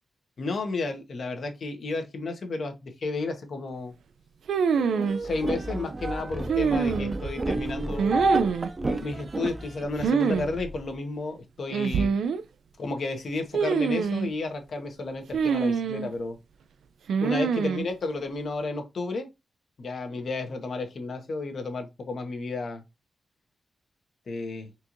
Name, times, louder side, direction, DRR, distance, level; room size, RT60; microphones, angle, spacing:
voice 1, 0.4-3.9 5.2-8.2 8.8-12.1 12.8-16.4 17.2-19.3 19.8-22.8 24.3-24.7, left 3 dB, 65° left, 1.0 m, -32 dB
sound 1, 4.5-5.2 6.5-7.3 8.0-8.7 10.0-10.5 10.7-10.8 11.7-12.4 13.5-14.3 15.3-16.1 17.1-17.8, right 6 dB, 90° right, 0.3 m, -25 dB
sound 2, 4.8-9.8, right 2 dB, 45° right, 0.6 m, -30 dB
sound 3, 5.2-11.0, equal, 10° right, 0.7 m, -39 dB
4.3 x 2.5 x 2.9 m
cardioid pair, 60°, 0 cm